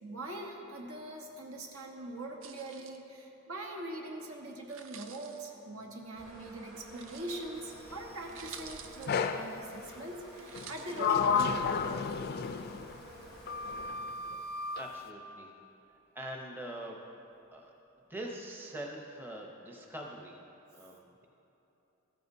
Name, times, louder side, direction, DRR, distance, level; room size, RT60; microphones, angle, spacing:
voice 1, 0.0-11.8, right 1 dB, 80° right, 1 dB, 1.1 m, -42 dB
sound 1, 2.4-3.0 4.6-5.5 6.9-7.5 8.0-8.1 8.3-9.3 10.4-11.3, right 7 dB, 60° right, 0.5 m, -50 dB
sound 2, 6.2-13.9, right 1 dB, 45° right, 2.0 m, -51 dB
Sliding door, 9.1-9.5 10.5-13.0 13.5-14.9, left 6 dB, 45° left, 0.3 m, -32 dB
voice 2, 14.8-15.5 15.9-17.0 17.5-17.7 18.1-20.4 20.7-21.3, right 1 dB, 10° right, 0 dB, 0.7 m, -43 dB
14.0 x 9.1 x 2.7 m, 3.0 s
head